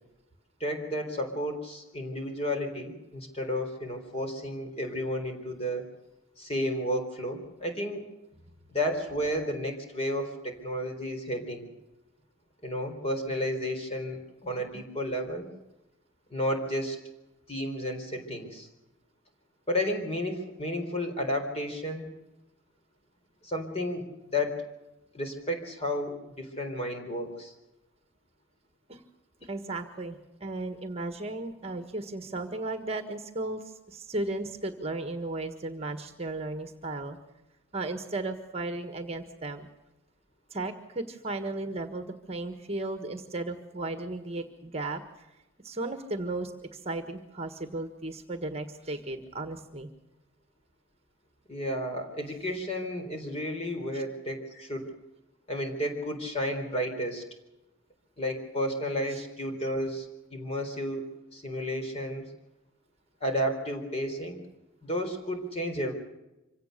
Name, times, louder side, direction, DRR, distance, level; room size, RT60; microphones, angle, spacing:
voice 1, 0.6-5.8 6.4-8.0 8.7-11.7 12.6-15.5 16.3-17.0 17.5-18.7 19.7-22.1 23.4-24.6 25.1-27.5 51.5-54.9 55.5-57.2 58.2-62.2 63.2-64.4 64.8-65.9, equal, 30° left, 4 dB, 4.0 m, -32 dB
voice 2, 29.4-37.2 37.7-39.7 40.5-45.3 45.6-49.9 53.9-54.0 59.1-59.2, right 2 dB, 30° right, 8 dB, 1.5 m, -35 dB
25.5 x 17.5 x 6.8 m, 0.97 s
head